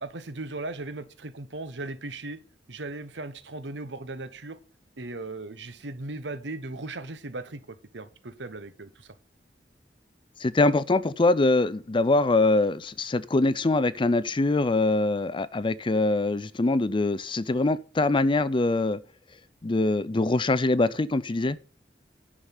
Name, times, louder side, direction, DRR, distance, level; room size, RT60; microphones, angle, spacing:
voice 1, 0.0-2.4 2.7-4.6 5.0-9.1, right 2 dB, 90° right, 1.1 m, -37 dB
voice 2, 10.4-19.0 19.6-21.6, left 2 dB, 30° left, 0.5 m, -23 dB
10.0 x 6.3 x 5.5 m
head